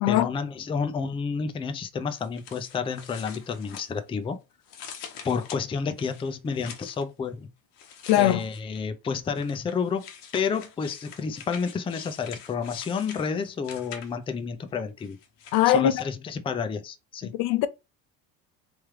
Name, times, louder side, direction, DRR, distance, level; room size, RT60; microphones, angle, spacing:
voice 1, 0.1-4.4 5.2-7.5 8.1-15.2 15.7-17.3, left 5 dB, 15° left, 0.4 m, -30 dB
sound 1, 2.2-4.3 4.6-7.0 7.7-8.8 9.3-14.4 15.0-15.7, left 7 dB, 80° left, 1.1 m, -45 dB
voice 2, 8.1-8.4 15.5-16.0 17.3-17.7, left 12 dB, 65° left, 0.6 m, -21 dB
3.5 x 3.2 x 3.1 m
cardioid pair, 110°, 40 cm